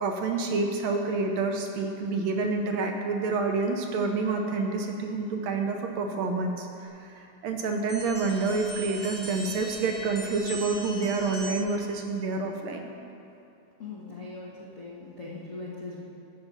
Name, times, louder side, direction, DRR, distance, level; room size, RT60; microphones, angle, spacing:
voice 1, 0.0-12.9, right 3 dB, 75° right, 3 dB, 1.9 m, -28 dB
sound 1, 7.9-11.8, right 1 dB, 20° left, 2.5 m, -40 dB
voice 2, 13.8-16.0, left 3 dB, 65° left, -7 dB, 0.7 m, -40 dB
14.5 x 5.9 x 5.2 m, 2.8 s
omnidirectional pair, 3.4 m